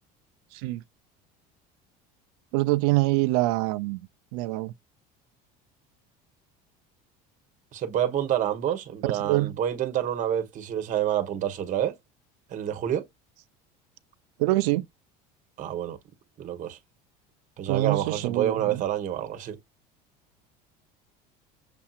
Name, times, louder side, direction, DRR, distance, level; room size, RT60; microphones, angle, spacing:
voice 1, 0.5-0.8 2.5-4.0 4.3-4.7 9.0-9.6 14.4-14.8 17.7-18.8, right 19 dB, 80° right, 0.6 m, -25 dB
voice 2, 7.7-12.0 12.5-13.0 15.6-16.0 16.4-16.8 17.6-19.6, right 10 dB, 40° right, 1.2 m, -28 dB
6.9 x 2.7 x 2.4 m
supercardioid pair, 120°, 20 cm